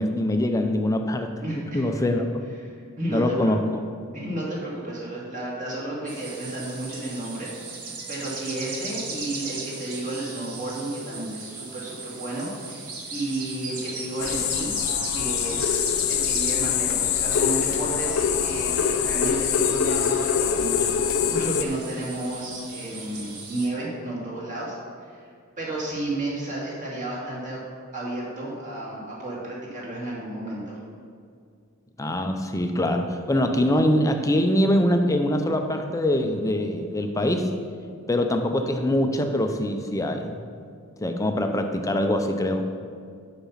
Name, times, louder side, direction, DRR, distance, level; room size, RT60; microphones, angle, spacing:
voice 1, 0.0-2.2 3.1-3.8 32.0-37.5 38.1-40.4 41.0-42.6, left 1 dB, 15° left, 5 dB, 0.5 m, -23 dB
voice 2, 1.4-2.2 2.7-3.5 4.1-14.7 15.1-24.8 25.0-25.2 25.6-27.6 27.9-30.8, right 1 dB, 35° right, -5 dB, 2.2 m, -32 dB
sound 1, 6.1-23.7, right 4 dB, 90° right, 1.4 m, -38 dB
sound 2, 14.2-21.6, left 8 dB, 70° left, 0.5 m, -24 dB
7.0 x 6.0 x 5.6 m, 2.2 s
head